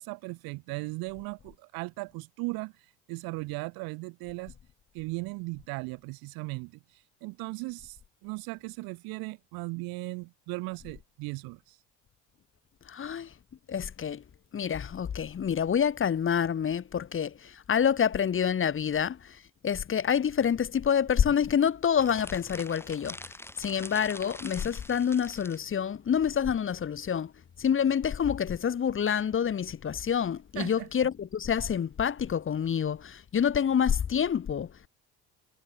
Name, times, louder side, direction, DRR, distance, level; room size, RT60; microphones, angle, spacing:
voice 1, 0.0-4.5 4.9-11.8 30.6-31.1, right 25 dB, 75° right, 5.8 m, -37 dB
voice 2, 12.9-13.3 13.7-14.2 14.5-27.3 27.6-34.9, left 8 dB, 35° left, 1.6 m, -27 dB
sound 1, 21.9-25.6, left 1 dB, 5° left, 7.8 m, -44 dB
hypercardioid pair, 75°, 36 cm